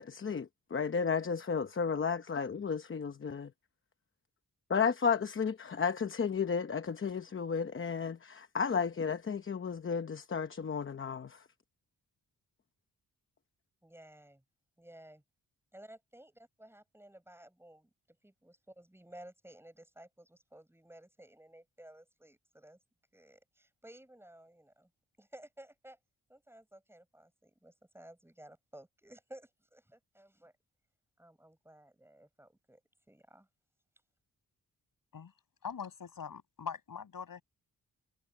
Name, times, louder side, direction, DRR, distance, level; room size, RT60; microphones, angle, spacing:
voice 1, 0.0-3.5 4.7-11.5, left 6 dB, 35° left, 0.8 m, -33 dB
voice 2, 13.8-14.4 14.8-15.2 15.7-17.9 18.2-22.8 23.1-24.9 25.2-26.0 26.3-30.5 31.2-32.8 33.1-33.5, right 1 dB, 5° right, 7.4 m, -55 dB
voice 3, 35.6-37.4, left 6 dB, 65° left, 6.6 m, -42 dB
wide cardioid pair, 165°, 37 cm